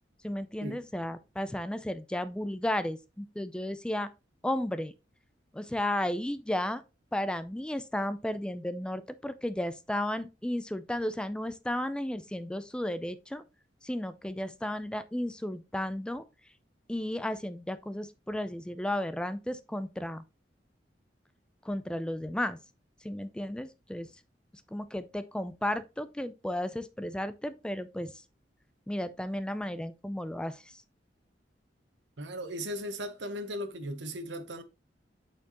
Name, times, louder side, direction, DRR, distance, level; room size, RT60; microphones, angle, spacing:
voice 1, 0.2-4.1 4.4-4.9 5.5-6.8 7.1-13.4 13.8-16.2 16.9-20.2 21.6-22.6 23.0-24.1 24.7-28.1 28.9-30.8, left 1 dB, 5° left, 0.3 m, -33 dB
voice 2, 32.2-34.6, equal, 85° right, 1.0 m, -37 dB
8.4 x 4.4 x 2.9 m
head